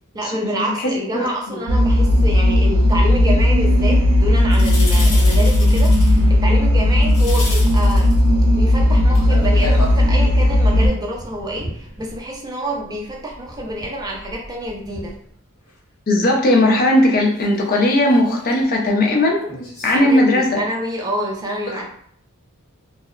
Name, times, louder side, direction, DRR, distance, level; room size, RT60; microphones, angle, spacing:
voice 1, 0.1-8.1 8.5-15.1 19.8-21.8, right 1 dB, 20° right, -1 dB, 0.4 m, -27 dB
voice 2, 0.8-1.6 16.1-19.4 19.8-20.6, left 1 dB, 40° left, 0 dB, 0.5 m, -17 dB
sound 1, 1.7-10.9, left 1 dB, 65° right, 0.5 m, -15 dB
sound 2, 4.5-6.2 7.0-8.2 9.1-10.0 10.7-12.5 12.7-15.3 15.7-15.8 17.4-17.6 18.0-18.5 19.5-20.0, left 1 dB, 85° left, 0.8 m, -33 dB
2.7 x 2.0 x 2.4 m, 0.64 s
head